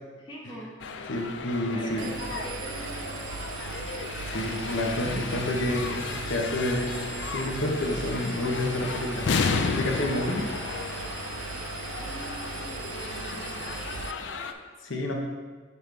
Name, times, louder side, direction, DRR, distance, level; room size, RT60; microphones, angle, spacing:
voice 1, 0.2-0.7 1.7-3.2 12.0-13.9 14.2-14.6, equal, 25° left, -5 dB, 1.5 m, -42 dB
sound 1, 0.8-14.5, left 5 dB, 65° left, 0.4 m, -34 dB
voice 2, 1.1-2.1 4.2-7.1 7.3-9.3 9.7-10.5 14.9-15.1, left 1 dB, 85° left, 1 dB, 1.0 m, -29 dB
Engine, 2.0-14.1, right 5 dB, 85° right, 0.4 m, -38 dB
6.2 x 5.6 x 3.3 m, 1.5 s
head